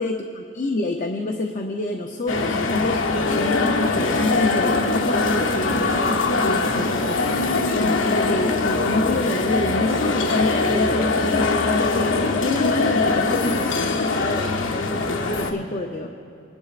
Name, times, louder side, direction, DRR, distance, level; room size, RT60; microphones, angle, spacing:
voice 1, 0.0-6.1 6.4-16.1, left 2 dB, 40° left, 2 dB, 0.6 m, -28 dB
sound 1, 2.3-15.5, left 3 dB, 75° left, 0.8 m, -22 dB
27.0 x 10.5 x 2.5 m, 2.6 s
head